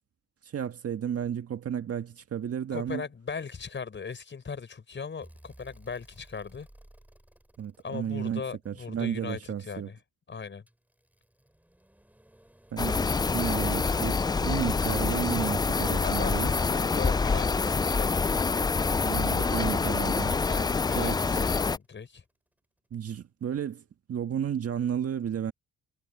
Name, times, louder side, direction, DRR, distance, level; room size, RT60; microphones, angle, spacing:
voice 1, 0.4-3.0 7.6-9.9 12.7-13.1 13.3-16.5 19.0-20.4 20.9-21.2 22.9-25.5, right 9 dB, 50° right, 1.7 m, -32 dB
voice 2, 2.7-6.7 7.8-10.0 10.3-10.6 16.0-18.1 20.5-22.2, left 5 dB, 40° left, 5.2 m, -38 dB
sound 1, 5.2-9.4 10.7-21.9 23.4-23.5, right 1 dB, 5° right, 7.6 m, -56 dB
sound 2, 12.8-21.8, left 4 dB, 15° left, 0.3 m, -26 dB
cardioid pair, 90°, 30 cm